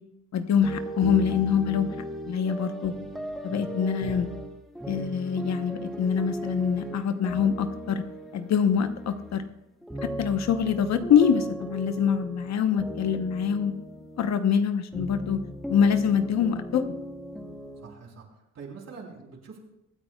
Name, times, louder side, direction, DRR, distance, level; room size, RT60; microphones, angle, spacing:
voice 1, 0.3-1.9 2.3-2.9 3.4-4.3 4.9-8.0 8.3-9.5 10.0-13.7 14.2-15.4 15.7-16.8, left 7 dB, 60° left, 9 dB, 1.0 m, -24 dB
sound 1, 0.6-9.5 9.8-14.4 14.9-17.9, right 1 dB, ahead, 1.7 m, -38 dB
voice 2, 17.8-19.6, right 5 dB, 60° right, 0 dB, 3.6 m, -44 dB
24.5 x 8.9 x 2.4 m, 0.86 s
cardioid pair, 90°, 30 cm